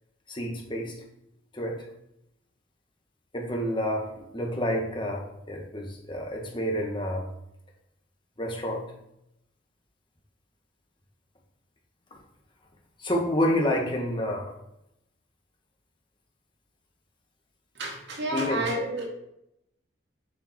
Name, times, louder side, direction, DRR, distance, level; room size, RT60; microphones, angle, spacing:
voice 1, 0.3-0.9 1.5-1.9 3.3-7.3 8.4-8.9 13.0-14.5 18.3-18.7, equal, 25° left, 0 dB, 1.4 m, -29 dB
voice 2, 17.8-19.0, right 1 dB, 75° right, 0 dB, 2.0 m, -30 dB
7.3 x 5.2 x 4.4 m, 0.81 s
head